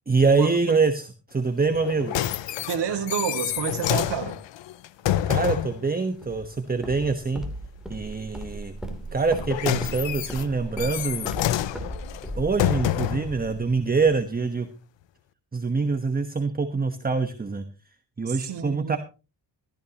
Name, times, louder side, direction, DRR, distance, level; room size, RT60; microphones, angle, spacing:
voice 1, 0.1-2.2 5.3-7.4 7.9-8.8 9.1-11.3 12.4-14.7 15.5-17.6 18.2-19.0, right 4 dB, 20° right, 1.2 m, -25 dB
sound 1, 1.7-5.8 9.2-13.4 14.1-14.2, left 12 dB, 90° left, 0.8 m, -28 dB
voice 2, 2.7-4.4 18.3-19.0, right 8 dB, 70° right, 2.3 m, -29 dB
Walk footsteps, 6.2-14.1, right 1 dB, ahead, 3.2 m, -38 dB
15.0 x 14.5 x 3.0 m
cardioid pair, 110°, 43 cm